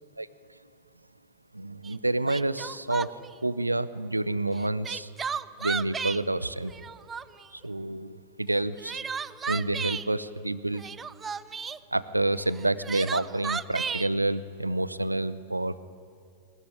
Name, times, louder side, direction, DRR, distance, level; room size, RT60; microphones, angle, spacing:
voice 1, 1.5-5.1 5.6-6.7 7.5-9.0 9.5-10.8 11.9-15.8, right 2 dB, 85° right, 16 dB, 0.7 m, -29 dB
Crying sobbing, 1.8-1.9 2.3-3.3 4.5-6.2 6.7-7.5 8.5-10.1 10.7-11.8 12.6-14.1, right 6 dB, 20° right, 0.6 m, -33 dB
21.0 x 19.0 x 9.8 m, 2.3 s
figure-of-eight pair, 90°, 0 cm